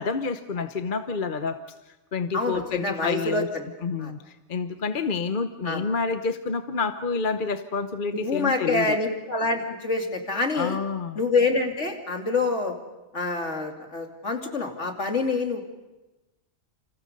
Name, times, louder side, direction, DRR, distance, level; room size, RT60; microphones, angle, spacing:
voice 1, 0.0-1.6 1.9-3.5 3.8-9.0 10.5-11.2, left 5 dB, 45° left, 9 dB, 1.0 m, -28 dB
voice 2, 2.3-3.7 4.0-4.1 5.6-5.8 8.1-10.8 11.1-12.7 13.1-15.6, left 3 dB, 65° left, 3 dB, 3.2 m, -26 dB
29.0 x 27.5 x 5.4 m, 1.1 s
omnidirectional pair, 1.3 m